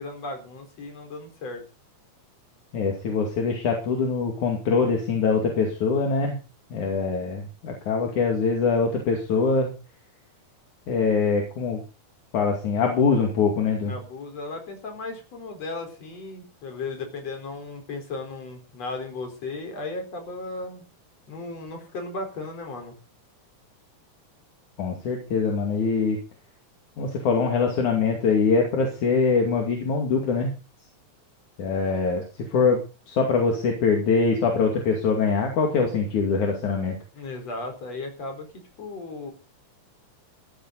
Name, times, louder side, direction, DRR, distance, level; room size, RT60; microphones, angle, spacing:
voice 1, 0.0-1.6 13.8-20.8 21.3-23.0 37.1-38.5 38.8-39.3, left 3 dB, 55° left, 4 dB, 5.8 m, -35 dB
voice 2, 2.7-6.4 6.7-9.7 10.9-11.8 12.3-13.9 24.8-26.2 27.0-30.5 31.6-32.2 32.5-32.8 33.1-37.0, left 5 dB, 70° left, 2 dB, 3.9 m, -23 dB
15.0 x 14.5 x 4.1 m, 0.33 s
omnidirectional pair, 3.5 m